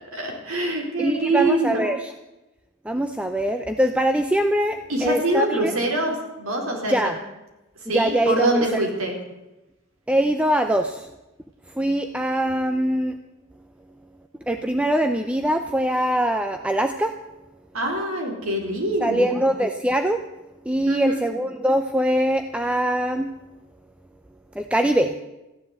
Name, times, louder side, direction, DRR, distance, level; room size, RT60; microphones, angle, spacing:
voice 1, 0.0-1.8 4.9-7.0 7.8-9.1 17.7-19.4 20.9-21.2, right 1 dB, 80° right, 1 dB, 4.3 m, -24 dB
voice 2, 1.0-2.1 2.8-5.7 6.9-7.2 7.9-8.9 10.1-11.1 11.8-13.2 14.5-17.1 19.0-20.2 20.7-23.4 24.6-25.1, right 1 dB, 5° right, 6 dB, 0.6 m, -23 dB
15.0 x 11.0 x 8.2 m, 1.0 s
head